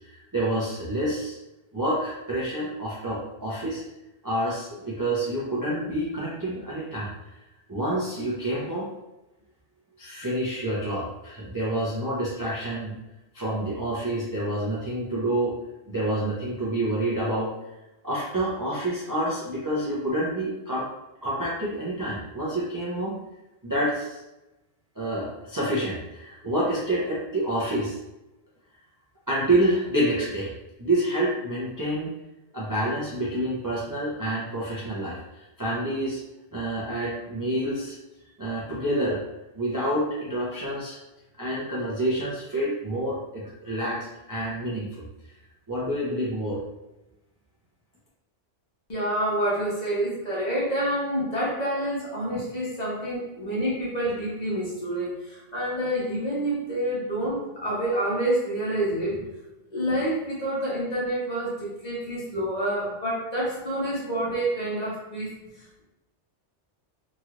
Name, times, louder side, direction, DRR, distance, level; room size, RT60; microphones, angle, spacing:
voice 1, 0.0-1.4 1.7-3.8 4.2-7.1 7.7-8.9 10.0-13.0 13.3-15.6 15.9-17.5 18.0-20.9 21.2-23.1 23.6-24.2 25.0-28.0 29.3-30.5 30.8-32.1 32.5-36.2 36.5-37.9 38.4-39.2 39.5-41.0 41.4-45.1 45.7-46.6, right 1 dB, 25° right, -7 dB, 0.5 m, -28 dB
voice 2, 48.9-59.3 59.7-65.8, right 1 dB, 40° left, -7 dB, 1.1 m, -28 dB
3.0 x 2.9 x 2.5 m, 0.98 s
omnidirectional pair, 1.2 m